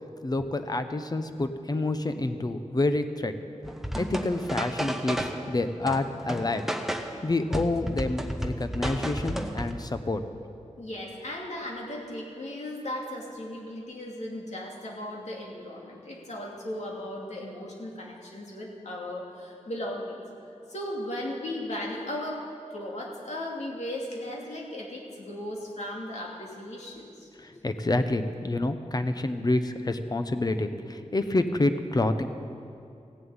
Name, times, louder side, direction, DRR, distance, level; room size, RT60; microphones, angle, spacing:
voice 1, 0.2-3.4 4.0-6.6 7.2-10.2 27.4-32.3, left 2 dB, 35° left, 9 dB, 0.8 m, -28 dB
sound 1, 3.6-5.5 5.9-7.2 7.5-9.7, equal, 5° right, 0.9 m, -32 dB
voice 2, 10.8-20.2 20.7-27.3, left 1 dB, 70° left, -2 dB, 2.7 m, -36 dB
15.5 x 7.5 x 8.9 m, 2.6 s
wide cardioid pair, 105°, 12 cm